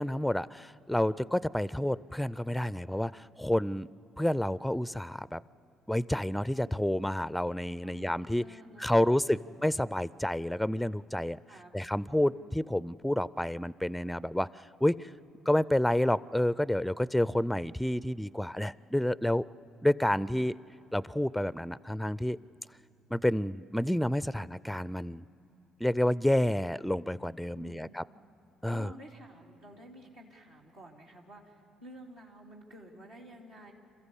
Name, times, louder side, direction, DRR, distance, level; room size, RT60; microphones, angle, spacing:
voice 1, 0.0-3.9 4.2-5.4 5.9-8.4 8.8-11.4 11.7-14.5 14.8-15.1 15.5-19.4 19.8-20.5 20.9-22.4 23.1-25.2 25.8-28.0 28.6-28.9, left 1 dB, 5° left, 19 dB, 0.4 m, -29 dB
voice 2, 7.8-9.5 11.5-11.7 12.3-12.5 27.5-27.9 28.6-33.7, right 1 dB, 80° right, -4 dB, 2.6 m, -51 dB
27.5 x 14.5 x 8.3 m, 2.9 s
hypercardioid pair, 50°, 0 cm